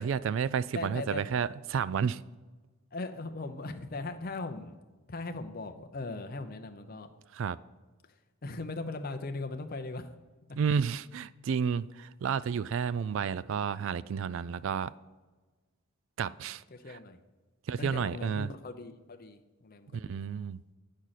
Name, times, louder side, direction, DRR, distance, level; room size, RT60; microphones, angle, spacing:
voice 1, 0.0-2.2 7.3-7.6 10.5-14.9 16.2-16.6 17.7-18.5 19.9-20.6, right 7 dB, 60° right, 0.3 m, -31 dB
voice 2, 0.7-1.3 2.9-4.8 5.1-7.1 8.4-10.1 16.7-17.2 17.8-20.2, left 3 dB, 45° left, 0.7 m, -39 dB
8.8 x 6.3 x 4.1 m
head